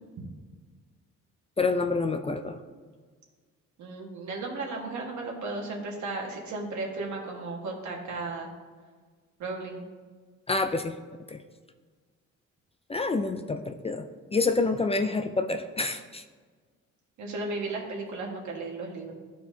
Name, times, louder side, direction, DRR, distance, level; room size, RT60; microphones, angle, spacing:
voice 1, 1.6-2.6 10.5-11.0 11.3-11.4 12.9-16.2, left 3 dB, 20° left, 7 dB, 0.4 m, -28 dB
voice 2, 3.8-8.5 9.4-9.8 17.2-19.1, right 3 dB, 70° right, 0 dB, 1.6 m, -35 dB
12.5 x 4.6 x 2.7 m, 1.5 s
cardioid pair, 90°, 30 cm